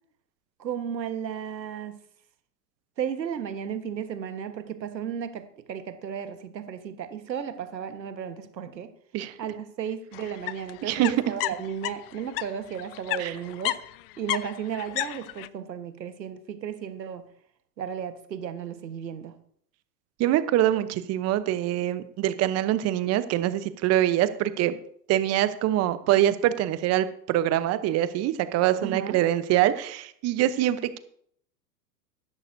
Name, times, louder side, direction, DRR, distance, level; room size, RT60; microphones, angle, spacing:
voice 1, 0.6-1.9 3.0-8.9 9.4-13.8 14.2-17.3 17.8-19.4 28.8-29.2, right 8 dB, 85° right, 1.4 m, -34 dB
sound 1, 10.1-12.5 12.8-15.5, left 17 dB, 40° left, 0.4 m, -32 dB
voice 2, 20.2-24.8 25.1-31.0, right 13 dB, 30° right, 0.8 m, -24 dB
14.0 x 11.0 x 2.7 m
hypercardioid pair, 105°, 50 cm